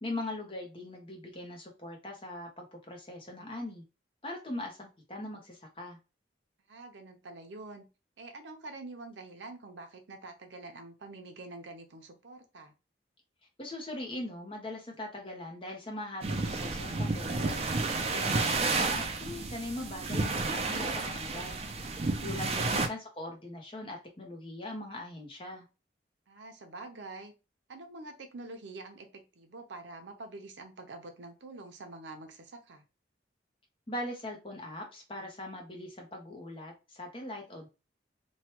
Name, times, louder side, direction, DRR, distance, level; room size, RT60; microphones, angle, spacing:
voice 1, 0.0-3.8 4.2-6.0 13.6-17.7 18.1-21.6 22.2-25.6 33.9-37.7, left 1 dB, 30° left, 2 dB, 0.7 m, -41 dB
voice 2, 6.7-7.9 8.2-12.7 26.3-27.3 27.7-32.9, right 2 dB, 80° right, 5 dB, 0.7 m, -46 dB
sound 1, 16.2-22.9, right 3 dB, 35° right, 0.4 m, -31 dB
3.1 x 2.2 x 2.9 m, 0.30 s
head